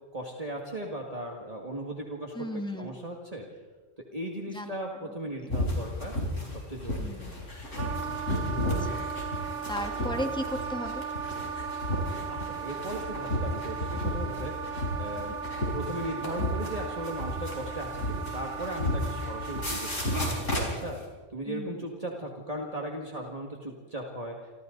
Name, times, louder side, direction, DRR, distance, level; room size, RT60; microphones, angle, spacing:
voice 1, 0.1-2.5 2.8-3.4 4.1-6.2 6.5-7.1 12.3-14.6 15.0-15.4 15.7-20.2 20.5-21.0 21.3-24.4, right 1 dB, 30° right, 0 dB, 2.2 m, -37 dB
voice 2, 2.3-3.0 4.5-4.7 5.4-5.5 7.0-7.5 8.7-9.1 9.7-11.1 15.2-15.3 21.5-21.8, equal, 5° left, 4 dB, 1.7 m, -36 dB
sound 1, 5.5-21.0, left 1 dB, 70° left, 5.4 m, -33 dB
Wind instrument woodwind instrument, 7.8-20.7, right 7 dB, 50° right, 1.0 m, -37 dB
29.0 x 25.5 x 4.0 m, 1.3 s
omnidirectional pair, 1.3 m